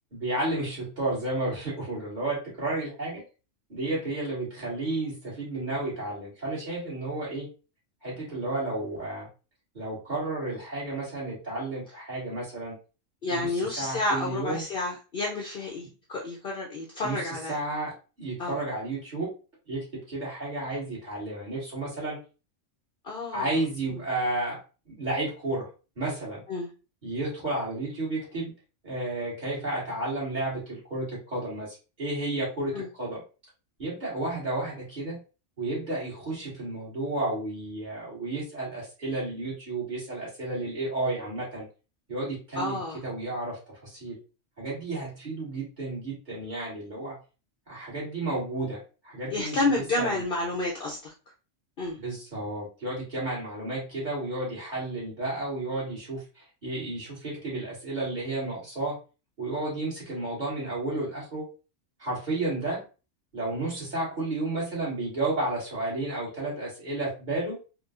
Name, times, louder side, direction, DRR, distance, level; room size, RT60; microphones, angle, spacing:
voice 1, 0.1-3.2 3.7-7.5 8.0-9.3 9.7-12.7 13.3-14.6 17.0-17.2 17.5-17.9 18.2-19.3 19.7-22.2 23.3-24.6 25.0-25.7 26.0-26.4 27.0-28.5 28.8-33.2 33.8-35.2 35.6-41.6 42.1-44.2 44.6-47.2 47.7-50.2 52.0-58.9 59.4-61.4 62.0-62.8 63.3-67.6, right 2 dB, 35° right, -6 dB, 2.0 m, -32 dB
voice 2, 13.2-17.5 18.4-18.6 23.0-23.5 23.9-24.0 26.5-26.7 32.7-32.9 42.6-43.0 49.3-51.1 51.8-52.0, left 2 dB, 55° left, -2 dB, 0.8 m, -30 dB
4.3 x 2.3 x 2.4 m, 0.32 s
omnidirectional pair, 1.3 m